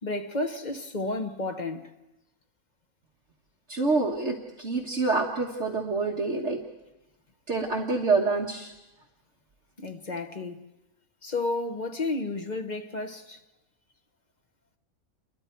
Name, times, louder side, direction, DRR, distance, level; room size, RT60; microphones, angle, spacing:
voice 1, 0.0-1.9 9.8-10.6 11.2-13.4, left 2 dB, 35° left, 1.1 m, -32 dB
voice 2, 3.7-6.6 7.5-8.7, right 3 dB, 50° right, 1.7 m, -27 dB
29.0 x 22.0 x 4.6 m
omnidirectional pair, 1.5 m